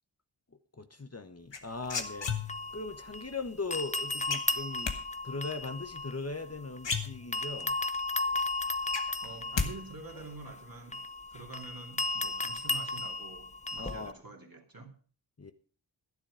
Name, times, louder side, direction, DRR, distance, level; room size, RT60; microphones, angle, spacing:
voice 1, 0.8-2.3 2.7-4.9 5.2-7.8 13.8-14.2 15.4-15.5, left 3 dB, 35° left, 1.1 m, -39 dB
sound 1, 1.5-2.8 4.3-5.0 6.4-6.5 6.8-7.6 8.0-8.1 8.5-9.7 10.0-10.4, left 5 dB, 85° left, 1.5 m, -33 dB
sound 2, 1.9-3.4 3.7-6.9 7.3-14.1, left 2 dB, 15° left, 0.6 m, -35 dB
voice 2, 9.2-11.0 11.3-14.9, right 3 dB, 50° right, 2.7 m, -47 dB
12.0 x 10.5 x 5.1 m
wide cardioid pair, 50°, 43 cm